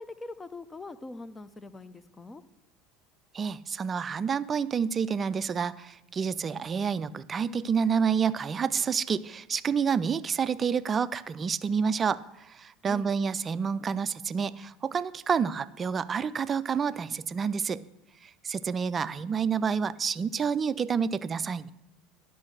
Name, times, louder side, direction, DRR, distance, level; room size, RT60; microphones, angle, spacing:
voice 1, 0.0-2.4 12.8-13.1, left 2 dB, 20° left, 14 dB, 0.6 m, -42 dB
voice 2, 3.3-17.8 18.2-21.7, right 6 dB, 30° right, 16 dB, 0.4 m, -29 dB
11.0 x 5.4 x 6.3 m, 0.90 s
figure-of-eight pair, 70°, 0 cm